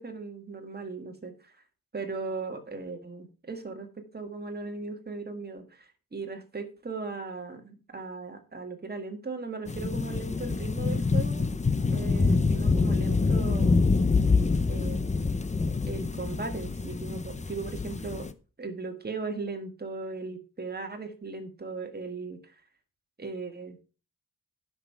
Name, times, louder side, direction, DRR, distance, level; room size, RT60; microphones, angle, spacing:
voice 1, 0.0-1.6 1.9-11.5 11.9-13.8 14.7-15.1 15.7-18.3 18.6-22.6 23.2-23.8, right 4 dB, 25° right, 5 dB, 1.7 m, -38 dB
sound 1, 9.7-18.3, left 4 dB, 20° left, 0.6 m, -26 dB
11.0 x 6.2 x 4.6 m, 0.34 s
wide cardioid pair, 140°, 35 cm